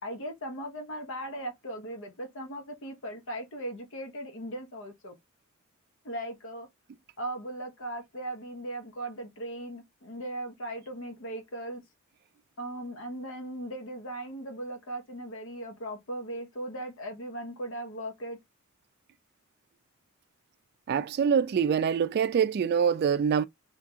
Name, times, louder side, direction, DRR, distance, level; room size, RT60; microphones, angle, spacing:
voice 1, 0.0-5.1 6.0-6.7 7.2-11.8 12.6-18.4, right 1 dB, 65° left, 0.9 m, -38 dB
voice 2, 20.9-23.5, right 7 dB, 50° right, 0.3 m, -25 dB
3.5 x 2.8 x 2.7 m
head